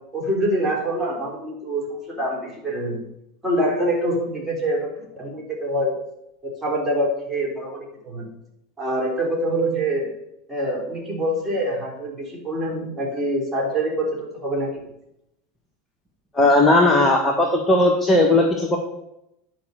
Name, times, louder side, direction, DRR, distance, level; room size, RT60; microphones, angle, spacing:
voice 1, 0.1-3.0 3.4-5.9 6.4-8.3 8.8-10.1 10.5-14.9, right 1 dB, 10° right, -2 dB, 3.9 m, -25 dB
voice 2, 16.3-18.8, left 2 dB, 10° left, 0 dB, 1.4 m, -17 dB
10.5 x 5.4 x 6.6 m, 0.83 s
figure-of-eight pair, 85°, 0 cm